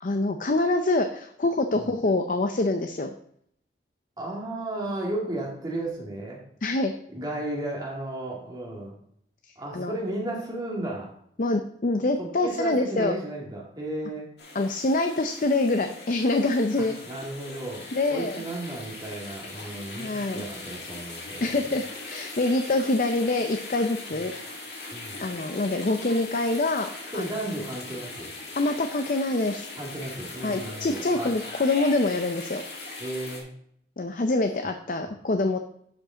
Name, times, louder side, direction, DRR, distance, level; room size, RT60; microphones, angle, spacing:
voice 1, 0.0-3.1 6.6-6.9 9.7-9.9 11.4-13.1 14.5-17.0 17.9-18.4 20.0-20.4 21.4-24.3 25.2-27.3 28.6-29.7 30.4-32.6 34.0-35.6, left 2 dB, 50° left, 6 dB, 0.5 m, -25 dB
voice 2, 4.2-6.4 7.1-9.0 9.6-11.1 12.2-14.3 16.8-17.8 18.1-21.7 24.9-25.2 27.1-28.3 29.7-31.4 33.0-33.5 35.1-35.2, right 1 dB, 25° right, -3 dB, 2.1 m, -34 dB
sound 1, 14.4-33.4, left 2 dB, 65° left, 2.3 m, -40 dB
11.5 x 5.2 x 3.8 m, 0.68 s
head